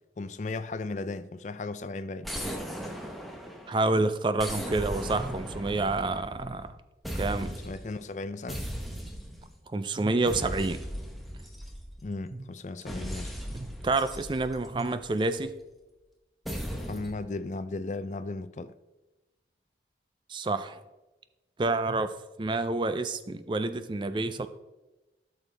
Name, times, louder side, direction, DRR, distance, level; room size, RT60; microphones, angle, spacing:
voice 1, 0.2-2.3 7.6-8.6 12.0-13.3 16.7-18.7, left 3 dB, 40° left, 0.4 m, -36 dB
sound 1, 2.2-3.8 4.4-6.7 7.0-7.9 8.5-9.5 10.2-12.1 12.9-15.3 16.4-17.2, equal, ahead, 0.9 m, -37 dB
voice 2, 3.7-6.7 7.2-7.6 9.7-10.8 12.3-12.5 13.5-15.5 20.3-20.8 21.6-22.1 22.4-24.5, right 2 dB, 25° right, 0.4 m, -28 dB
12.5 x 6.4 x 3.4 m
head